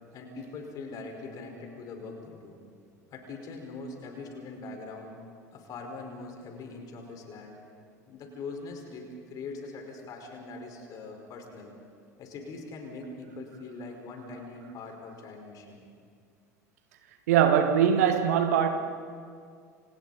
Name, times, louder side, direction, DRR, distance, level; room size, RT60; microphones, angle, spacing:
voice 1, 0.1-2.6 3.1-5.2 5.5-7.6 8.1-11.7 12.2-15.9, left 3 dB, 45° left, 4.8 m, -42 dB
voice 2, 17.3-18.7, right 8 dB, 65° right, 1.7 m, -22 dB
29.5 x 27.0 x 4.2 m
figure-of-eight pair, 70°, 9 cm